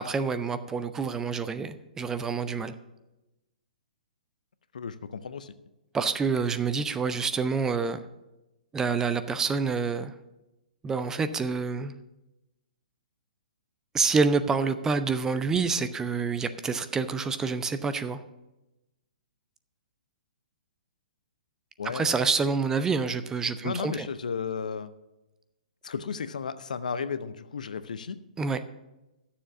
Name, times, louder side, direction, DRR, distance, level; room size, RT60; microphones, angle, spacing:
voice 1, 0.0-2.7 5.9-8.0 8.7-10.1 10.8-11.9 13.9-18.2 21.9-24.1 28.4-28.6, right 5 dB, 10° right, 11 dB, 0.5 m, -27 dB
voice 2, 4.7-5.5 21.8-22.1 23.6-24.9 25.8-28.2, left 6 dB, 65° left, 13 dB, 0.7 m, -34 dB
12.5 x 7.1 x 6.0 m, 0.98 s
figure-of-eight pair, 120°, 5 cm